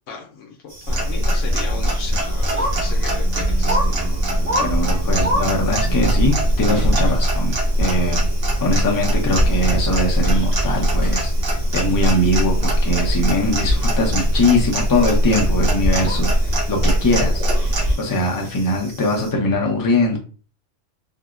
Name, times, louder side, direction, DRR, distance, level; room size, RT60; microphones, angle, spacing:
voice 1, 0.1-4.0, left 4 dB, 85° left, 0 dB, 0.9 m, -35 dB
sound 1, 0.7-19.3, equal, 35° right, 0.9 m, -34 dB
Clock, 0.9-18.0, equal, 80° right, 1.3 m, -20 dB
voice 2, 4.6-8.2 8.6-11.3 11.7-20.2, left 1 dB, 25° left, 0 dB, 0.5 m, -21 dB
3.5 x 2.0 x 2.4 m, 0.38 s
omnidirectional pair, 1.2 m